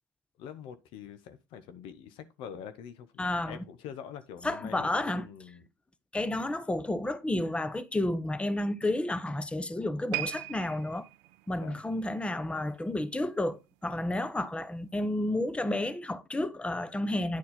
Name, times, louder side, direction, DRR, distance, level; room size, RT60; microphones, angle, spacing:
voice 1, 0.4-5.6 11.5-11.8, left 8 dB, 70° left, 1.0 m, -45 dB
voice 2, 3.2-3.6 4.4-5.3 6.1-11.1 11.5-17.4, left 1 dB, 10° left, 0.9 m, -31 dB
sound 1, 10.1-13.4 13.7-14.0 14.6-14.7, right 19 dB, 80° right, 0.4 m, -40 dB
9.6 x 4.3 x 4.2 m
hypercardioid pair, 70°, 9 cm